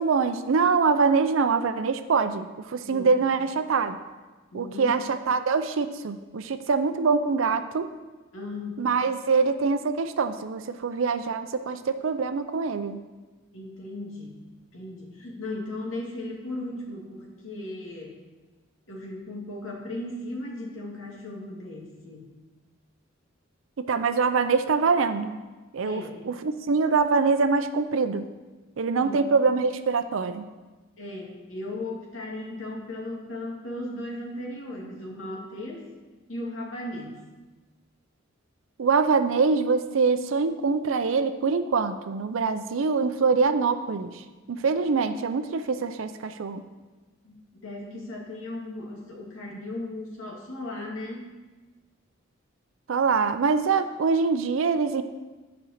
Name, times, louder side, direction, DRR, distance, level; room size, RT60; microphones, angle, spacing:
voice 1, 0.0-4.0 4.5-7.9 8.8-13.0 23.8-25.4 25.7-28.2 28.8-30.5 38.8-46.6 52.9-55.0, right 4 dB, 75° right, 10 dB, 0.5 m, -24 dB
voice 2, 4.5-5.0 8.3-8.8 13.5-14.4 14.7-18.2 18.9-22.3 25.8-26.2 29.0-29.3 31.0-35.8 36.3-37.2 47.2-51.3, left 1 dB, 85° left, -2 dB, 2.3 m, -36 dB
10.0 x 5.3 x 6.6 m, 1.2 s
head